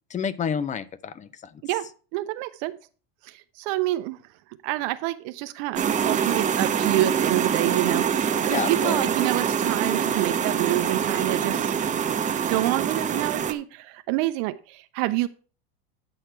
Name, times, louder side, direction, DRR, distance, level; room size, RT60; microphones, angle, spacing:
voice 1, 0.1-1.6 8.5-9.1, left 7 dB, 25° left, 0.7 m, -30 dB
voice 2, 1.6-2.8 3.2-4.2 4.6-11.7 12.5-15.3, right 17 dB, 60° right, 0.7 m, -27 dB
sound 1, 5.8-13.5, right 7 dB, 25° right, 1.0 m, -25 dB
9.7 x 6.5 x 4.4 m
supercardioid pair, 120°, 30 cm